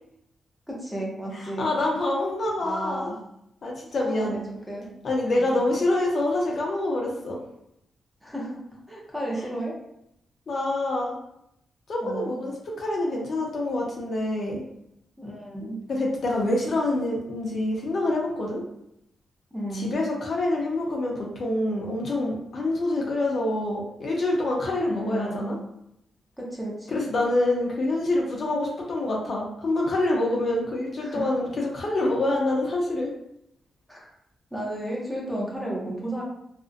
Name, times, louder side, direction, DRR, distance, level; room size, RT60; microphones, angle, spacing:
voice 1, 0.7-1.7 2.6-3.2 4.1-4.9 5.3-5.7 8.2-8.6 8.9-9.7 12.0-12.4 15.2-15.8 19.5-20.0 24.9-25.6 26.4-27.0 31.0-31.3 33.9-34.1 34.5-36.2, right 1 dB, 5° right, -4 dB, 0.6 m, -33 dB
voice 2, 1.4-3.1 3.6-4.4 5.0-7.4 10.5-11.2 11.9-12.5 12.8-14.6 15.6-18.6 19.7-25.6 26.9-33.1, left 2 dB, 50° left, -2 dB, 0.5 m, -26 dB
2.5 x 2.1 x 2.4 m, 0.77 s
wide cardioid pair, 145°, 0 cm